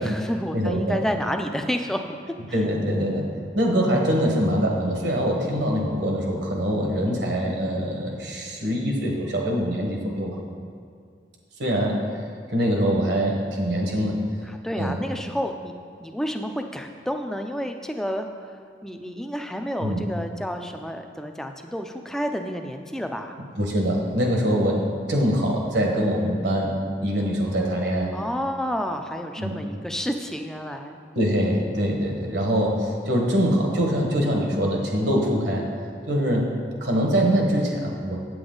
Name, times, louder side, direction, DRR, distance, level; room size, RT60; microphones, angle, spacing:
voice 1, 0.0-2.0 2.5-2.6 14.4-15.7 16.0-23.4 28.1-31.0, equal, 5° left, 5 dB, 0.4 m, -30 dB
voice 2, 0.5-1.0 2.5-3.3 3.5-10.4 11.6-12.0 12.5-14.2 14.8-14.9 19.8-20.0 23.6-28.1 29.4-29.6 31.1-35.7 36.1-36.5 36.8-38.2, equal, 70° right, 0 dB, 1.5 m, -23 dB
8.4 x 7.9 x 3.9 m, 2.2 s
head